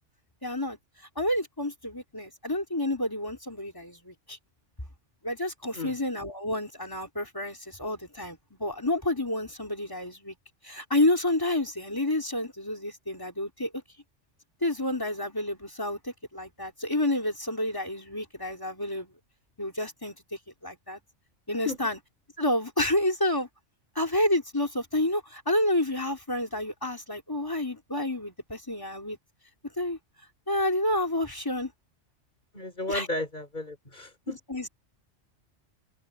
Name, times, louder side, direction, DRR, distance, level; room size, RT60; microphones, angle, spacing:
voice 1, 0.4-0.8 1.1-4.4 5.2-10.3 10.6-13.8 14.6-19.1 19.6-21.0 21.5-22.0 22.4-23.5 23.9-29.2 29.8-30.0 30.5-31.7 32.9-33.1 34.3-34.7, left 1 dB, 15° left, 3.3 m, -29 dB
voice 2, 32.5-34.4, left 2 dB, 40° left, 5.5 m, -33 dB
omnidirectional pair, 1.3 m